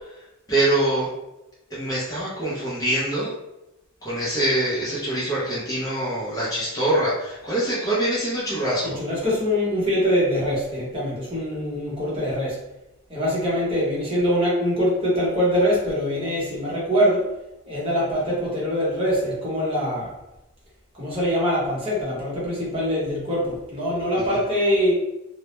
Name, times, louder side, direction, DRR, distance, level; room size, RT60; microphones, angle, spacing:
voice 1, 0.5-1.1 1.7-3.3 4.0-9.0, right 1 dB, 15° left, -8 dB, 0.5 m, -24 dB
voice 2, 8.8-12.6 13.1-17.3 17.7-20.1 20.9-25.0, equal, 25° right, -6 dB, 0.9 m, -23 dB
2.1 x 2.0 x 2.9 m, 0.92 s
head